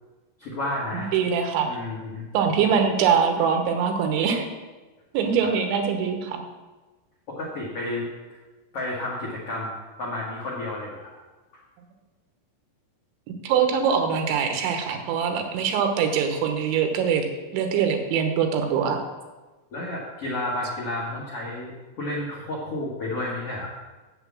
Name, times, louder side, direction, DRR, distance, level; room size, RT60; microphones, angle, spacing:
voice 1, 0.4-1.1 1.6-2.2 5.4-5.5 7.3-8.1 8.7-9.7 10.0-11.1 19.7-21.7 22.0-23.7, left 1 dB, 75° left, -4 dB, 1.3 m, -31 dB
voice 2, 0.9-1.7 2.3-4.5 5.1-6.4 13.4-17.3 17.5-19.0, right 7 dB, 75° right, 5 dB, 3.3 m, -23 dB
8.2 x 7.7 x 7.3 m, 1.2 s
omnidirectional pair, 5.5 m